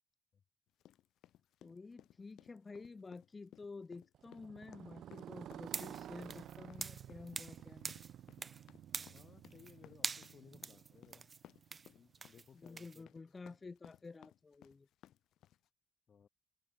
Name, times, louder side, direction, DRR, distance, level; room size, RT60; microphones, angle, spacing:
sound 1, 0.8-15.7, left 12 dB, 75° left, 2.8 m, -62 dB
voice 1, 1.6-7.9 12.5-14.9, left 4 dB, 25° left, 2.1 m, -51 dB
Motorcycle, 4.1-12.2, right 11 dB, 65° right, 2.0 m, -53 dB
sound 2, 5.7-7.6 7.8-8.6 8.9-9.7 10.0-13.0, right 4 dB, 30° right, 1.8 m, -44 dB
voice 2, 9.1-11.3 11.9-13.1 16.1-16.3, left 7 dB, 40° left, 7.8 m, -61 dB
cardioid pair, 125°, 0 cm